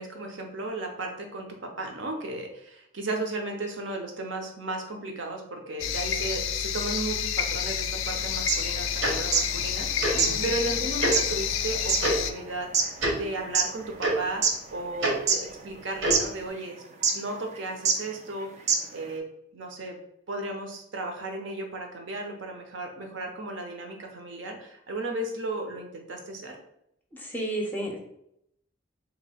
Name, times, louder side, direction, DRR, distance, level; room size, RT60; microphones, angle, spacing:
voice 1, 0.0-16.8 17.1-19.3 19.5-20.0 20.3-26.6, right 2 dB, 70° right, 3 dB, 0.7 m, -35 dB
sound 1, 5.8-12.3, left 8 dB, 80° left, 0.3 m, -29 dB
sound 2, 8.4-9.5 9.8-9.9 10.2-13.8 14.2-15.0 15.3-15.8 16.1-16.2 17.0-17.3 17.9-18.0 18.3-18.4 18.7-19.0, right 5 dB, 35° right, 0.4 m, -25 dB
Tick-tock, 9.0-9.1 10.0-10.1 11.0-11.1 12.0-12.1 13.0-13.1 14.0-14.1 15.0-15.1 16.0-16.2, right 1 dB, 85° right, 1.1 m, -25 dB
voice 2, 10.1-10.5 27.1-28.0, right 1 dB, 10° left, 0 dB, 0.6 m, -32 dB
2.9 x 2.6 x 4.2 m, 0.76 s
head